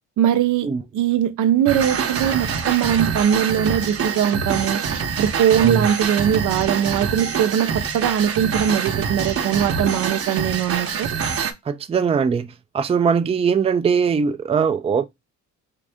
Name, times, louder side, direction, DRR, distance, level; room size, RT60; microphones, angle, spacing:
voice 1, 0.2-0.7 0.9-4.8 5.2-11.1, right 9 dB, 80° right, 0.7 m, -20 dB
sound 1, 1.7-11.5, right 6 dB, 50° right, 0.8 m, -25 dB
voice 2, 11.7-15.1, right 6 dB, 20° right, 0.4 m, -21 dB
3.7 x 2.6 x 3.3 m
cardioid pair, 90°, 30 cm